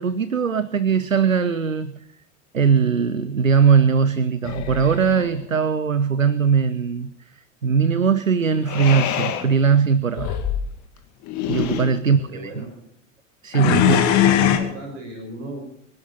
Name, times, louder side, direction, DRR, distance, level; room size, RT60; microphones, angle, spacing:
voice 1, 0.0-2.0 2.5-10.4 11.5-12.6 13.4-14.6, right 6 dB, 90° right, 17 dB, 0.7 m, -20 dB
sound 1, 4.4-5.3 8.7-9.5 10.1-10.6 11.2-11.9 13.5-14.6, left 11 dB, 45° left, 2.5 m, -21 dB
voice 2, 12.0-12.9 14.0-15.6, right 1 dB, 60° right, 2 dB, 5.4 m, -36 dB
25.5 x 12.0 x 4.2 m, 0.69 s
figure-of-eight pair, 70°, 38 cm